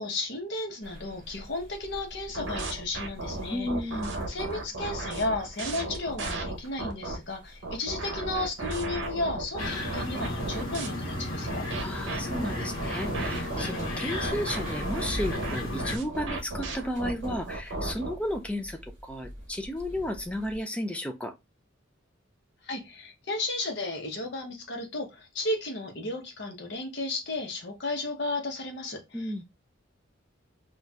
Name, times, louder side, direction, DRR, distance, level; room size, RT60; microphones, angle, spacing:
voice 1, 0.0-3.7 4.3-11.7 22.6-29.3, left 2 dB, 60° left, 0.9 m, -34 dB
sound 1, 0.8-20.6, equal, 35° right, 1.5 m, -45 dB
sound 2, 2.3-7.2 7.6-10.9 11.5-18.2, right 2 dB, 65° right, 0.8 m, -35 dB
voice 2, 3.5-4.2 11.8-21.3 29.1-29.4, left 1 dB, 5° left, 0.3 m, -33 dB
sound 3, 9.6-16.0, left 1 dB, 80° left, 1.2 m, -34 dB
4.1 x 2.4 x 2.3 m
head